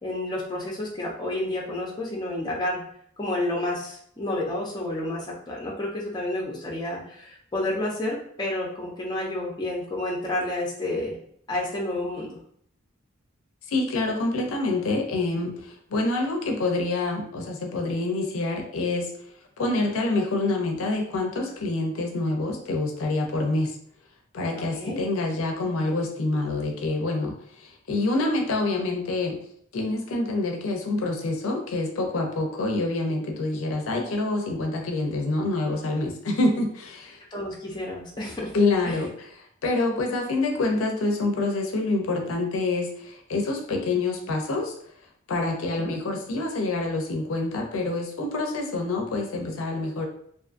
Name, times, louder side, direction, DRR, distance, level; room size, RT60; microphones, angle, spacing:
voice 1, 0.0-2.8 3.2-11.2 11.5-12.4 24.7-25.0 37.3-38.5 38.8-39.0 45.8-45.9, left 1 dB, 20° left, -3 dB, 0.6 m, -30 dB
voice 2, 13.7-19.1 19.6-23.7 24.3-29.4 29.7-37.2 38.5-44.7 45.3-50.1, left 2 dB, 80° left, 3 dB, 0.5 m, -26 dB
2.6 x 2.3 x 2.4 m, 0.65 s
head